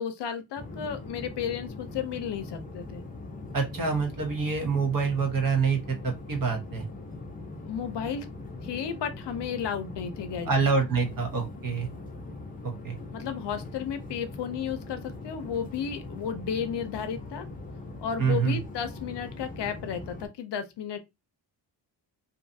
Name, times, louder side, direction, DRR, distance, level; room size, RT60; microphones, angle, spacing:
voice 1, 0.0-3.0 7.6-8.3 8.6-10.5 13.1-17.5 18.0-21.0, left 7 dB, 65° left, 0.5 m, -33 dB
sound 1, 0.6-20.3, left 2 dB, 20° left, 0.5 m, -41 dB
voice 2, 3.5-6.8 10.4-11.9 12.6-13.0 18.2-18.6, right 5 dB, 45° right, 0.9 m, -26 dB
2.6 x 2.3 x 2.6 m
wide cardioid pair, 150°, 45 cm